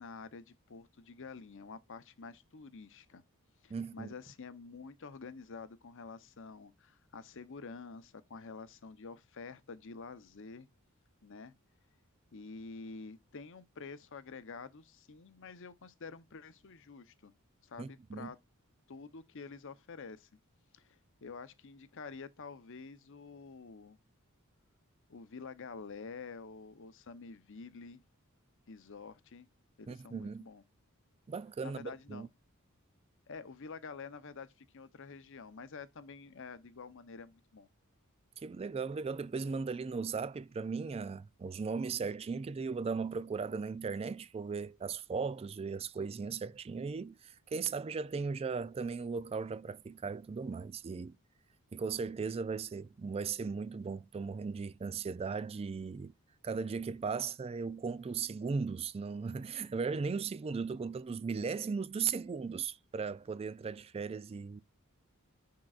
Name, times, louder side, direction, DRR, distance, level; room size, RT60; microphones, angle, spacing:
voice 1, 0.0-3.2 3.6-10.7 11.2-11.5 12.3-17.3 17.6-18.4 18.9-20.3 20.7-24.0 25.1-28.0 28.7-29.5 29.8-30.6 31.6-32.3 33.3-37.7, left 4 dB, 60° left, 0.7 m, -48 dB
voice 2, 3.7-4.1 17.8-18.3 29.9-30.4 31.3-32.3 38.4-51.2 51.7-56.1 56.4-64.6, right 5 dB, 25° right, 0.3 m, -37 dB
10.5 x 3.8 x 2.4 m
head